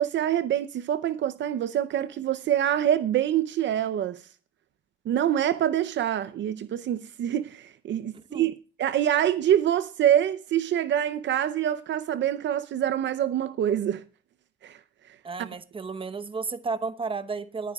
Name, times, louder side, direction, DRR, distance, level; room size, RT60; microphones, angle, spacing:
voice 1, 0.0-4.2 5.1-8.5 8.8-14.0 14.6-14.8 15.4-15.5, right 10 dB, 65° right, 0.7 m, -25 dB
voice 2, 8.1-8.5 15.2-17.7, right 4 dB, 25° right, 1.0 m, -33 dB
21.0 x 9.9 x 2.4 m
cardioid pair, 90°, 20 cm